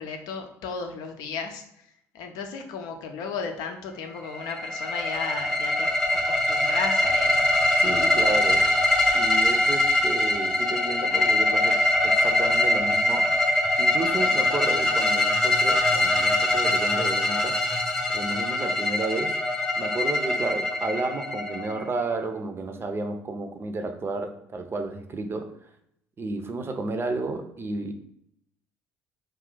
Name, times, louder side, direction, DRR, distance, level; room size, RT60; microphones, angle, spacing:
voice 1, 0.0-1.6 2.1-7.5, left 5 dB, 65° left, 4 dB, 0.6 m, -35 dB
sound 1, 4.2-22.1, left 1 dB, 5° left, 0.7 m, -23 dB
voice 2, 7.8-8.7 9.1-13.3 13.8-17.6 18.1-19.4 19.8-25.6 26.2-27.9, right 3 dB, 30° right, 6 dB, 0.5 m, -32 dB
2.7 x 2.4 x 3.8 m, 0.75 s
hypercardioid pair, 60°, 7 cm